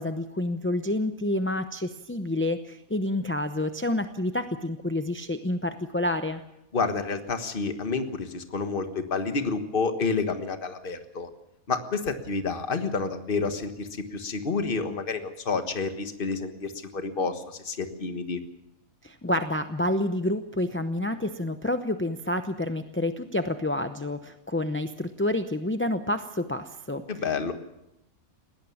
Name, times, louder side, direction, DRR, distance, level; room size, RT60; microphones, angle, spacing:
voice 1, 0.0-6.4 19.0-27.0, left 1 dB, 15° left, 7 dB, 0.5 m, -28 dB
voice 2, 6.7-11.3 11.7-18.4 27.1-27.5, left 4 dB, 40° left, 7 dB, 1.6 m, -29 dB
20.5 x 18.0 x 7.2 m, 0.84 s
omnidirectional pair, 1.5 m